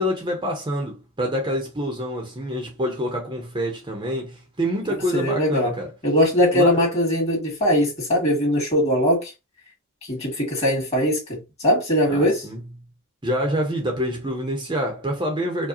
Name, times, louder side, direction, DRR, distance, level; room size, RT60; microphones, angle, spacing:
voice 1, 0.0-5.9 6.5-6.8 12.1-12.6 13.2-15.7, equal, 20° right, 0.8 m, -26 dB
voice 2, 5.1-5.7 6.0-9.3 10.0-12.4, equal, 30° left, 2.1 m, -21 dB
4.8 x 2.3 x 2.7 m
head